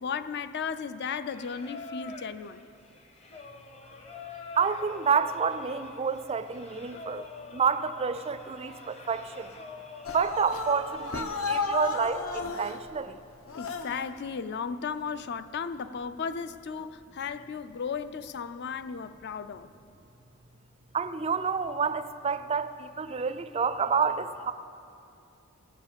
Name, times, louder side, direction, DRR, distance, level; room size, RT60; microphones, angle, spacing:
voice 1, 0.0-2.7 13.5-19.7, left 6 dB, 50° left, 13 dB, 0.4 m, -35 dB
Singing, 1.2-11.4, left 3 dB, 30° left, 0.9 m, -46 dB
voice 2, 4.6-7.2 7.5-9.5 10.1-13.2 20.9-24.5, right 5 dB, 25° right, 12 dB, 0.4 m, -29 dB
sound 1, 10.0-12.8 13.5-14.0, left 4 dB, 70° left, 0.9 m, -33 dB
17.0 x 7.3 x 7.3 m, 2.6 s
head